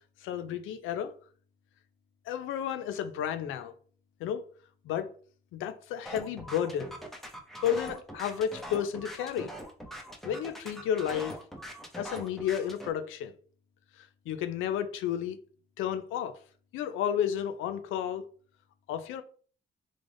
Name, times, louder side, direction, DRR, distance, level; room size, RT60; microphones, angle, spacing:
voice 1, 0.2-1.1 2.3-3.7 4.2-4.5 4.8-5.1 5.5-6.9 7.6-9.5 10.2-11.4 11.9-13.3 14.0-15.4 15.8-16.4 16.7-18.2 18.9-19.2, left 9 dB, 85° left, 0.5 m, -32 dB
sound 1, 6.1-12.9, equal, ahead, 0.7 m, -42 dB
3.8 x 2.4 x 3.4 m
cardioid pair, 90°, 20 cm